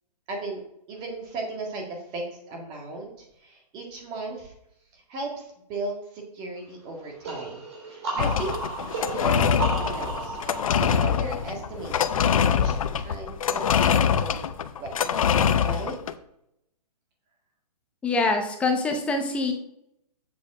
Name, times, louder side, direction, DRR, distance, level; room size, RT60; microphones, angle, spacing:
voice 1, 0.3-0.6 0.9-4.5 4.9-7.6 7.9-8.6 9.2-10.4 11.0-14.4 14.8-15.2 15.6-15.9, right 2 dB, 20° right, 1 dB, 1.8 m, -36 dB
sound 1, 7.2-12.8, right 3 dB, 40° right, 3.6 m, -34 dB
sound 2, 8.2-16.1, left 7 dB, 55° left, 0.7 m, -24 dB
voice 2, 18.0-19.5, left 3 dB, 5° left, 4 dB, 0.6 m, -24 dB
7.6 x 7.2 x 4.8 m, 0.77 s
hypercardioid pair, 160°, 21 cm